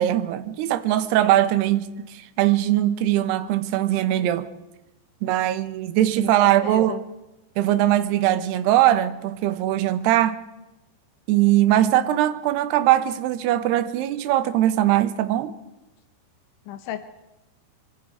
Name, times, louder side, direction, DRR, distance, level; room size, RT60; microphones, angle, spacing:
voice 1, 0.0-4.5 5.2-6.9 7.6-10.4 11.3-15.5, right 13 dB, 70° right, 3.0 m, -21 dB
voice 2, 6.0-7.0 16.7-17.0, left 11 dB, 85° left, 3.6 m, -34 dB
26.5 x 25.5 x 4.8 m
omnidirectional pair, 5.3 m